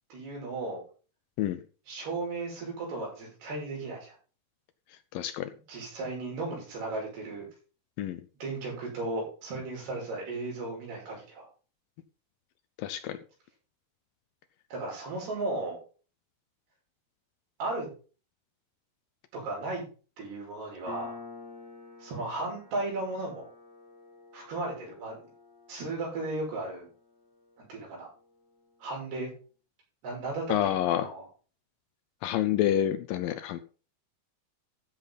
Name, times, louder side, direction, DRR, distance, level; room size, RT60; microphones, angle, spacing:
voice 1, 0.1-0.8 1.9-4.2 5.7-7.5 8.4-11.5 14.7-15.8 17.6-17.9 19.3-19.9 20.2-21.2 22.0-23.5 24.3-25.2 25.7-26.9 27.6-28.1 28.8-29.3 30.0-31.3, right 2 dB, 80° right, -2 dB, 7.9 m, -35 dB
voice 2, 5.1-5.5 8.0-8.2 12.8-13.2 30.5-31.1 32.2-33.6, left 11 dB, 75° left, 11 dB, 2.2 m, -28 dB
Piano, 20.9-28.0, left 4 dB, 40° left, 4.7 m, -49 dB
14.0 x 7.7 x 4.0 m, 0.37 s
omnidirectional pair, 4.6 m